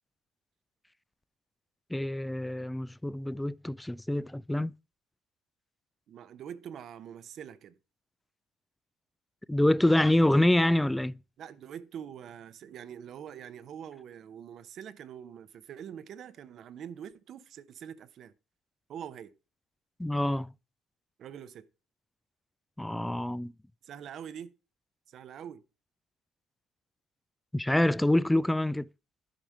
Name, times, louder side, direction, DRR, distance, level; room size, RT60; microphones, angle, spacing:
voice 1, 1.9-4.7 9.5-11.2 20.0-20.5 22.8-23.5 27.5-28.9, left 1 dB, 5° left, 0.3 m, -26 dB
voice 2, 6.1-7.8 11.4-18.3 18.9-19.3 21.2-21.6 23.8-24.5 25.1-25.6, right 8 dB, 60° right, 0.7 m, -44 dB
10.5 x 5.0 x 4.3 m
supercardioid pair, 70°, 0 cm